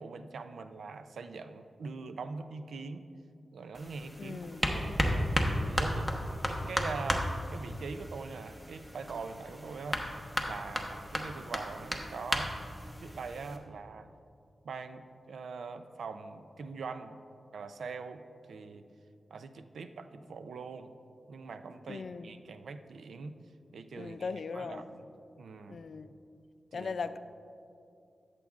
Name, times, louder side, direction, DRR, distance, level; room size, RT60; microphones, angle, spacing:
voice 1, 0.0-3.1 3.5-6.1 6.4-10.0 10.4-12.6 13.0-14.1 14.6-17.2 17.5-18.9 19.3-20.9 21.3-23.4 23.7-25.1 25.4-25.8 26.7-27.0, right 4 dB, 90° right, 10 dB, 0.4 m, -43 dB
sound 1, 3.7-13.6, equal, 5° right, 1.0 m, -34 dB
voice 2, 4.2-4.7 21.9-22.3 23.9-24.9 25.7-26.1 26.7-27.2, left 4 dB, 75° left, 12 dB, 0.3 m, -39 dB
13.0 x 7.3 x 2.4 m, 2.6 s
cardioid pair, 55°, 0 cm